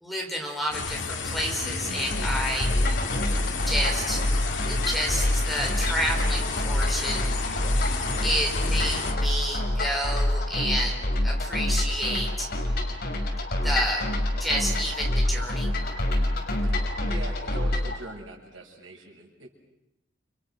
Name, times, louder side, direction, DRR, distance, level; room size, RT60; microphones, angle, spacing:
voice 1, 0.0-3.0 3.6-4.2 4.6-7.3 8.2-12.5 12.7-12.8 13.6-14.0 14.4-15.7, equal, ahead, 0 dB, 4.8 m, -30 dB
sound 1, 0.7-9.1, left 4 dB, 70° left, 3.2 m, -32 dB
sound 2, 2.1-18.0, left 1 dB, 50° left, 5.6 m, -26 dB
voice 2, 17.1-19.5, right 2 dB, 75° right, 1 dB, 7.0 m, -41 dB
30.0 x 29.5 x 6.4 m, 0.86 s
head